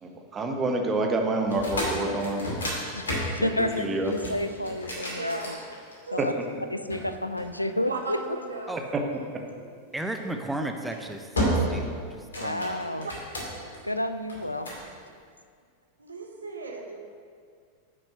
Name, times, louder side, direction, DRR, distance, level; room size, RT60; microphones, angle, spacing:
voice 1, 0.0-2.4 3.4-4.1 6.2-6.3 8.9-9.0, right 2 dB, 20° right, 2 dB, 1.2 m, -27 dB
sound 1, 1.4-6.2 6.9-8.2 10.0-10.2 10.7-11.0 11.4-11.9 12.2-13.8 14.3-14.9, equal, 70° left, 2.5 m, -31 dB
voice 2, 2.9-5.6 6.1-6.3 6.7-8.2 12.3-13.1 13.8-14.7, left 1 dB, 85° left, 10 dB, 0.4 m, -30 dB
voice 3, 5.1-5.7 6.0-6.2 7.8-8.8 9.1-9.2 13.0-13.1 16.0-17.0, right 3 dB, 75° right, 2 dB, 1.2 m, -37 dB
voice 4, 9.9-13.1, right 1 dB, 5° right, 4 dB, 0.8 m, -35 dB
8.9 x 6.1 x 6.3 m, 2.1 s
figure-of-eight pair, 90°, 0 cm